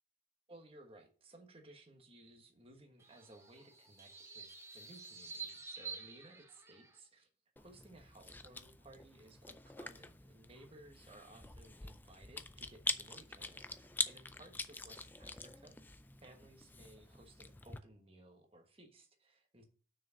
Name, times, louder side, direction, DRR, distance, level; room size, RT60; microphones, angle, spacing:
voice 1, 0.5-7.3 7.6-19.6, right 1 dB, 30° right, 4 dB, 1.3 m, -59 dB
sound 1, 3.0-7.0, right 5 dB, 15° right, 0.9 m, -49 dB
Chewing mastication, 7.6-17.8, left 3 dB, 10° left, 0.4 m, -45 dB
6.2 x 4.9 x 6.3 m, 0.42 s
head